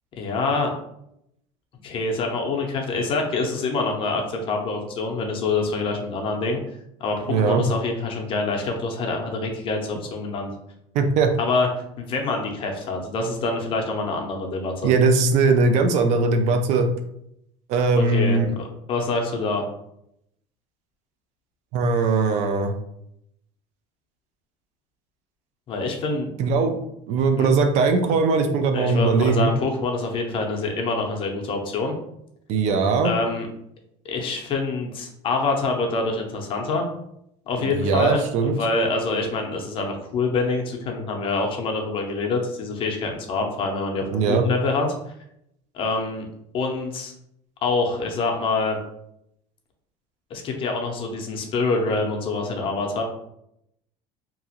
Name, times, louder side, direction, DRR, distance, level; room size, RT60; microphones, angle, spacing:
voice 1, 0.2-0.7 1.8-6.6 7.0-10.5 11.4-11.7 12.0-14.9 17.9-19.6 25.7-26.3 27.4-27.5 28.7-31.9 33.0-33.5 34.0-36.9 37.5-44.9 45.7-46.3 46.5-47.1 47.6-48.8 50.3-53.0, left 3 dB, 40° left, 2 dB, 0.6 m, -26 dB
voice 2, 7.3-7.7 10.9-11.3 14.8-16.9 17.7-18.5 21.7-22.7 26.4-26.8 27.1-29.5 32.5-33.1 37.6-38.6 44.1-44.5, right 4 dB, 55° right, 7 dB, 0.4 m, -20 dB
2.8 x 2.4 x 2.8 m, 0.77 s
cardioid pair, 145°, 14 cm